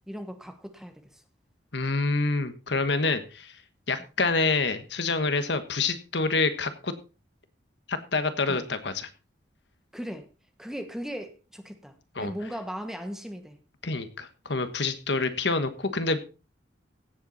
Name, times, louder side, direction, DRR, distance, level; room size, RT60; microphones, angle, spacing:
voice 1, 0.1-1.2 8.5-8.7 9.9-10.3 10.6-13.6, equal, 5° right, 1.2 m, -38 dB
voice 2, 1.7-3.6 3.9-6.9 7.9-9.1 12.1-12.3 13.8-16.2, left 3 dB, 65° left, 1.3 m, -27 dB
16.5 x 7.8 x 4.1 m
head